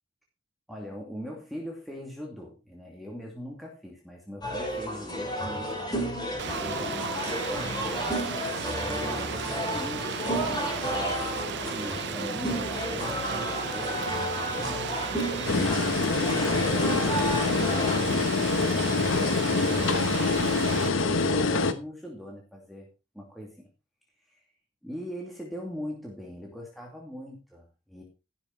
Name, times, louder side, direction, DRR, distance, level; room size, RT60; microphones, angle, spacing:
voice 1, 0.7-6.1 6.6-7.7 8.8-15.0 15.3-15.9 16.2-22.9 23.1-23.7 24.3-24.4 24.8-28.0, equal, ahead, -1 dB, 2.6 m, -41 dB
sound 1, 4.4-18.0, equal, 20° left, 4.5 m, -32 dB
Rain, 6.4-20.9, right 7 dB, 65° right, 0.6 m, -35 dB
sound 2, 15.5-21.7, left 4 dB, 85° left, 1.3 m, -25 dB
15.5 x 7.0 x 4.7 m, 0.30 s
head